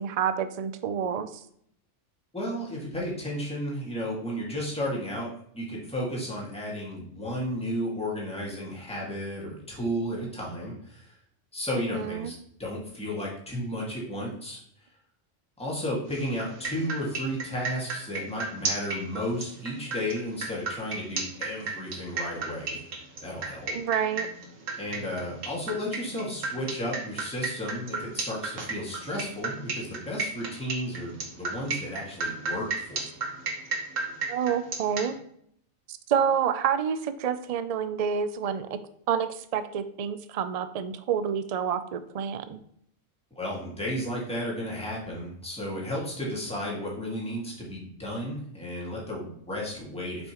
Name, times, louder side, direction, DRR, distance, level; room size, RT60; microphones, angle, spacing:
voice 1, 0.0-1.4 11.7-12.3 23.7-24.3 34.3-35.1 35.9-38.7 39.1-42.6, right 8 dB, 75° right, 11 dB, 0.3 m, -28 dB
voice 2, 2.3-11.1 11.5-12.3 12.6-14.6 15.6-22.8 23.2-23.7 24.8-33.1 43.3-50.3, equal, 5° left, -4 dB, 1.9 m, -33 dB
sound 1, 16.1-35.1, right 3 dB, 90° right, 1.6 m, -33 dB
7.7 x 5.4 x 3.0 m, 0.67 s
omnidirectional pair, 1.3 m